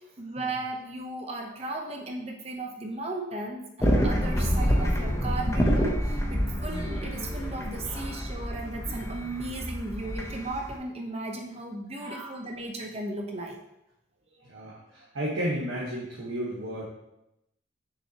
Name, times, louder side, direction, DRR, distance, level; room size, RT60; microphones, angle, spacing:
voice 1, 0.2-5.9 6.3-13.6, right 2 dB, 30° right, 2 dB, 0.8 m, -36 dB
sound 1, 3.8-10.8, equal, 15° left, 0.8 m, -27 dB
voice 2, 12.0-12.4 14.4-16.8, equal, 90° right, -6 dB, 1.4 m, -34 dB
6.7 x 5.9 x 2.9 m, 0.85 s
head